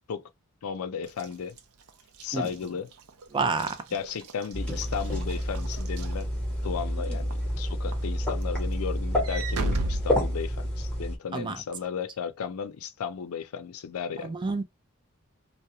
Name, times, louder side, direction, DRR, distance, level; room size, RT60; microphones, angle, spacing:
voice 1, 0.6-1.6 2.2-2.9 3.9-14.4, left 6 dB, 85° left, 0.4 m, -35 dB
Walk footsteps / Slam, 1.1-6.8 7.3-7.6 7.9-10.9, right 2 dB, 85° right, 0.5 m, -37 dB
voice 2, 3.3-3.8 11.3-11.6 14.2-14.6, right 4 dB, 20° right, 0.4 m, -28 dB
sound 1, 4.5-11.2, equal, 5° left, 1.0 m, -29 dB
2.3 x 2.1 x 2.7 m
head